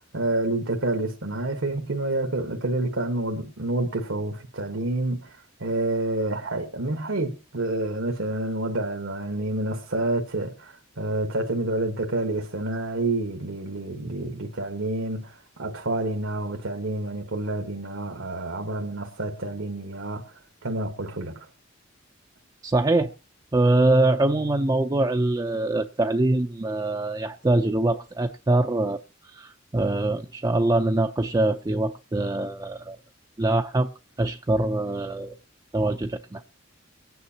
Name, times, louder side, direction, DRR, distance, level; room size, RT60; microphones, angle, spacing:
voice 1, 0.1-20.3 20.6-21.5, right 2 dB, 75° right, 1.3 m, -28 dB
voice 2, 22.6-23.1 23.5-33.0 33.4-33.9 34.2-35.4 35.7-36.4, right 2 dB, 20° right, 0.5 m, -23 dB
23.5 x 9.3 x 2.8 m
head